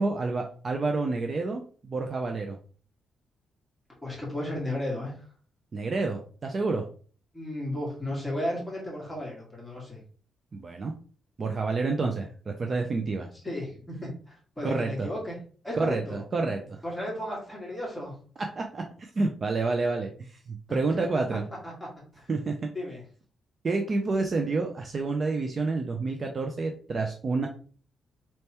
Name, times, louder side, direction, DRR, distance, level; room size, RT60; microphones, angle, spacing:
voice 1, 0.0-2.6 5.7-6.8 10.5-10.9 11.4-13.3 14.6-15.1 15.7-16.8 18.4-21.4 22.3-22.7 23.6-27.5, right 3 dB, 30° right, 3 dB, 0.4 m, -29 dB
voice 2, 4.0-5.2 7.3-10.0 13.4-15.4 15.6-16.2 16.8-18.2 20.7-20.8 21.1-21.2 21.6-21.7 22.1-22.4 22.7-23.0, left 1 dB, 5° left, -4 dB, 1.6 m, -34 dB
4.3 x 3.3 x 2.8 m, 0.42 s
cardioid pair, 175°, 0 cm